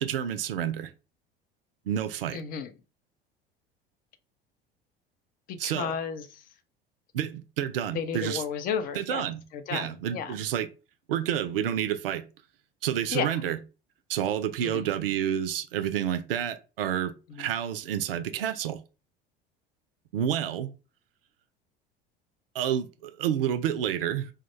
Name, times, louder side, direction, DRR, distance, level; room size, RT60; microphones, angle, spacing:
voice 1, 0.0-0.9 1.9-2.4 5.6-5.9 7.1-8.4 8.9-9.4 9.7-10.7 11.1-12.2 12.8-13.6 14.1-18.8 20.1-20.7 22.5-24.3, right 10 dB, 70° right, 0.4 m, -29 dB
voice 2, 2.3-2.7 5.5-6.4 7.9-9.3 9.5-10.4 13.1-13.3 14.6-14.9 17.3-17.5, left 7 dB, 30° left, 0.4 m, -33 dB
2.2 x 2.1 x 3.0 m
figure-of-eight pair, 65°, 30 cm